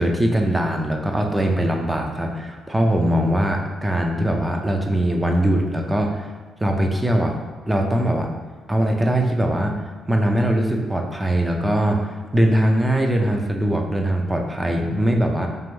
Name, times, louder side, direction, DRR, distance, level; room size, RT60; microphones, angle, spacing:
voice 1, 0.0-6.3 6.6-7.4 7.7-8.3 8.7-9.7 10.1-15.5, right 1 dB, 10° right, 2 dB, 0.5 m, -21 dB
3.5 x 2.6 x 4.4 m, 1.3 s
cardioid pair, 90°, 0 cm